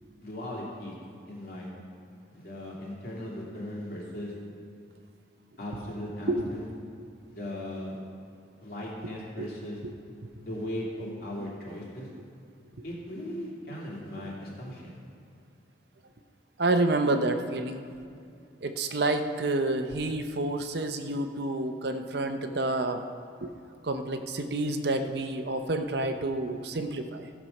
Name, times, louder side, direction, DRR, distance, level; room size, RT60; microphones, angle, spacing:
voice 1, 0.2-0.9 1.3-1.7 2.3-4.3 5.6-6.6 7.3-8.0 8.6-9.8 10.4-12.1 12.8-15.0, left 1 dB, 50° left, -4 dB, 2.7 m, -38 dB
voice 2, 16.6-17.8 18.6-23.0 23.4-23.5 23.8-27.3, right 2 dB, 60° right, 7 dB, 0.6 m, -29 dB
15.0 x 6.1 x 5.4 m, 2.5 s
head